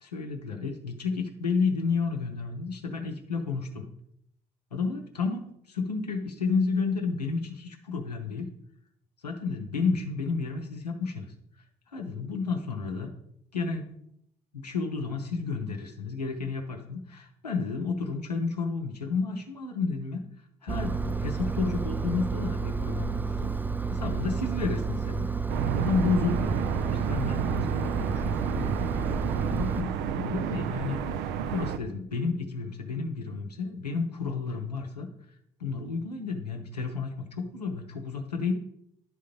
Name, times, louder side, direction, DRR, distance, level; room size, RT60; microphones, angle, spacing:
voice 1, 0.0-3.9 4.7-8.5 9.2-11.3 11.9-13.1 13.5-13.9 14.5-20.2 20.6-23.5 23.9-25.3 25.7-26.6 27.1-28.9 29.5-31.0 31.4-35.1 35.6-38.5, left 4 dB, 90° left, 3 dB, 0.7 m, -31 dB
Engine, 20.7-29.8, right 5 dB, 10° right, 0.4 m, -31 dB
sound 1, 25.5-31.8, right 8 dB, 60° right, 0.5 m, -31 dB
11.0 x 3.8 x 5.1 m, 0.73 s
figure-of-eight pair, 45°, 20 cm